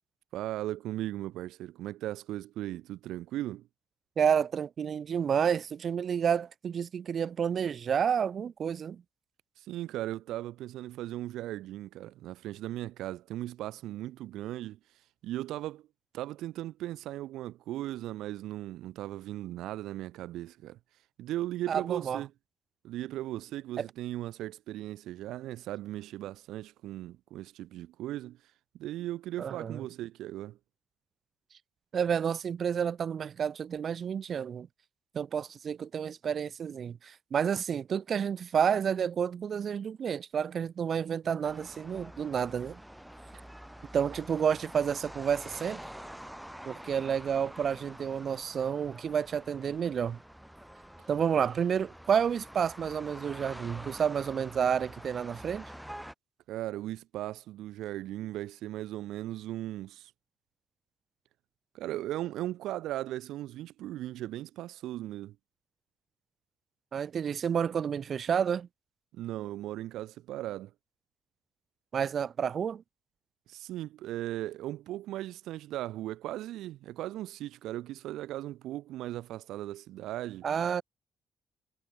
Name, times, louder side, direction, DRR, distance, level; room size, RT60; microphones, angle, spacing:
voice 1, 0.3-3.7 9.6-15.9 16.1-20.8 21.2-22.3 22.8-28.5 28.8-30.6 56.5-60.1 61.7-65.4 69.1-70.7 73.5-80.5, right 14 dB, 85° right, 2.4 m, -37 dB
voice 2, 4.2-9.0 21.7-22.2 23.8-23.9 29.4-29.8 31.9-34.7 35.1-42.8 43.9-45.8 46.6-50.2 51.1-55.6 66.9-68.7 71.9-72.8 80.4-80.8, right 7 dB, 40° right, 3.8 m, -30 dB
sound 1, 41.4-56.1, equal, ahead, 6.8 m, -47 dB
cardioid pair, 160°, 0 cm